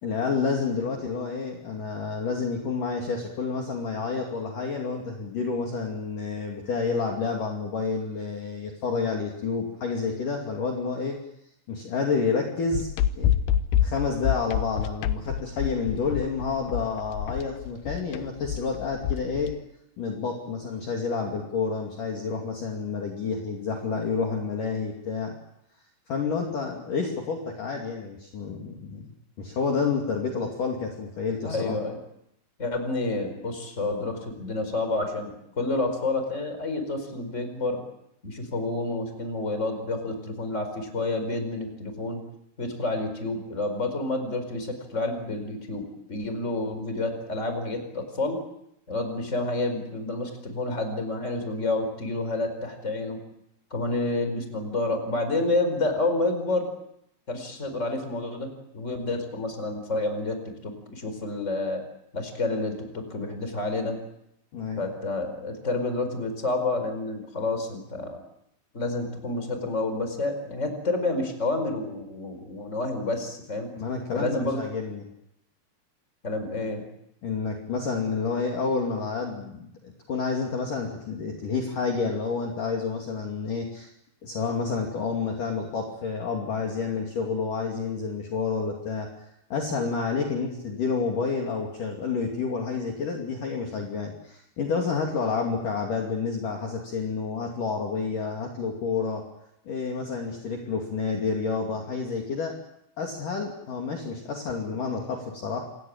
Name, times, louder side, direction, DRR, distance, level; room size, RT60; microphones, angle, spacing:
voice 1, 0.0-11.2 11.7-12.9 13.2-13.3 13.8-19.5 20.0-25.4 26.1-29.1 29.4-31.8 64.5-64.9 73.8-75.0 77.2-83.9 84.2-89.1 89.5-99.2 99.7-102.6 103.0-105.6, left 5 dB, 50° left, 0 dB, 3.8 m, -29 dB
sound 1, 12.7-19.5, left 10 dB, 70° left, 2.8 m, -27 dB
voice 2, 31.4-32.0 32.6-37.8 38.2-42.2 42.6-48.4 48.9-53.2 53.7-56.7 57.3-60.4 60.6-61.8 62.1-64.0 64.8-68.2 68.7-73.7 74.1-74.6 76.2-76.8, left 2 dB, 15° left, 7 dB, 4.6 m, -29 dB
27.5 x 19.0 x 8.8 m, 0.79 s
omnidirectional pair, 5.5 m